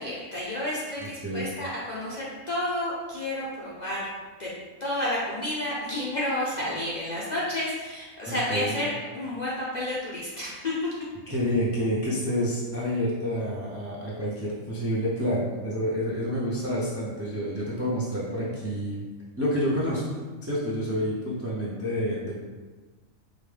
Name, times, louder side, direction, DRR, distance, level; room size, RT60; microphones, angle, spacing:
voice 1, 0.0-4.1 4.4-4.5 4.8-10.7, left 1 dB, 45° left, -7 dB, 0.6 m, -30 dB
voice 2, 1.0-1.4 8.3-8.8 11.3-19.0 19.4-20.0 20.4-22.4, equal, 20° right, -6 dB, 0.3 m, -28 dB
5.0 x 2.3 x 3.3 m, 1.3 s
omnidirectional pair, 1.4 m